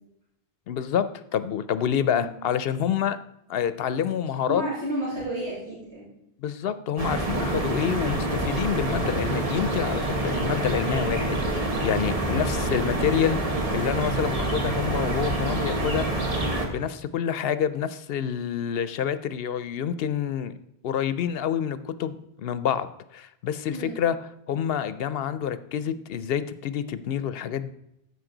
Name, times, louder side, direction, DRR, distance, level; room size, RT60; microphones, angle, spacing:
voice 1, 0.7-3.2 3.5-4.6 6.4-16.2 16.6-20.5 20.8-24.2 24.5-27.7, left 9 dB, 70° left, 14 dB, 0.8 m, -28 dB
voice 2, 4.5-6.1 12.2-12.5 23.7-24.0, right 1 dB, 85° right, -8 dB, 3.5 m, -32 dB
sound 1, 7.0-16.7, right 2 dB, 35° right, 1.3 m, -27 dB
14.0 x 5.4 x 3.9 m, 0.82 s
omnidirectional pair, 1.0 m